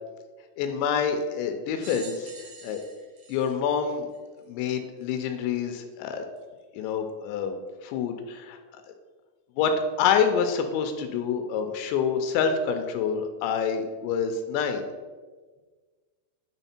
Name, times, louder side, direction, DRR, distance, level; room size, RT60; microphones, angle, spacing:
voice 1, 0.6-2.3 2.6-2.8 3.3-4.1 4.5-6.2 6.7-8.6 9.6-9.7 10.0-14.9, left 7 dB, 85° left, 6 dB, 2.7 m, -27 dB
sound 1, 1.8-4.4 5.1-5.2 6.4-6.5, right 3 dB, 60° right, 2.9 m, -46 dB
9.0 x 3.5 x 4.2 m, 1.4 s
omnidirectional pair, 5.2 m